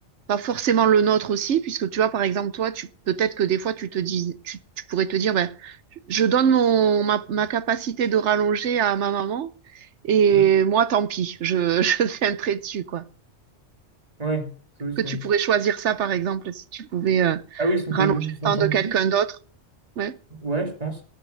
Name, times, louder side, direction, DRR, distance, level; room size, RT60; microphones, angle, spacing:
voice 1, 0.3-4.6 4.9-5.8 6.1-9.5 10.0-13.0 15.0-18.1 18.4-19.3 20.0-20.2, right 8 dB, 65° right, 1.1 m, -22 dB
voice 2, 14.2-14.5 14.8-15.2 17.6-18.9 20.3-21.0, right 3 dB, 30° right, 2.4 m, -27 dB
18.5 x 6.6 x 6.4 m
omnidirectional pair, 1.3 m